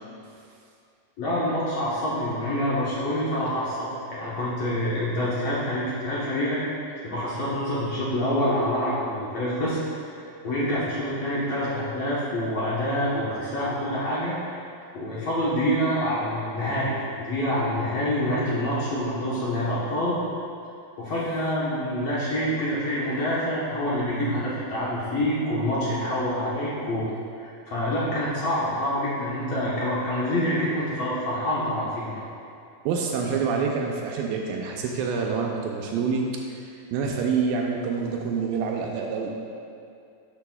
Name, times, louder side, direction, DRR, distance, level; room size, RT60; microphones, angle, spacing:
voice 1, 1.2-6.6 7.0-9.8 10.1-14.4 14.9-20.2 21.0-27.0 27.4-32.2, equal, 65° left, -8 dB, 1.6 m, -26 dB
voice 2, 32.9-36.3 36.7-39.3, right 5 dB, 80° right, 0 dB, 2.2 m, -27 dB
11.5 x 6.8 x 2.3 m, 2.5 s
omnidirectional pair, 4.3 m